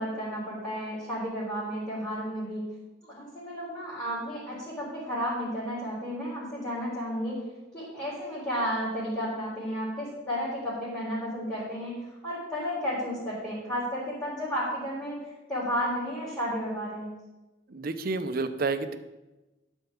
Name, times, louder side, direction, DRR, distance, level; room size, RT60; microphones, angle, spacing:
voice 1, 0.0-2.6 3.0-7.5 7.7-15.2 15.5-17.1, equal, 10° left, -11 dB, 3.7 m, -32 dB
voice 2, 17.7-19.0, right 3 dB, 50° right, 10 dB, 0.7 m, -30 dB
11.5 x 4.6 x 7.1 m, 1.1 s
head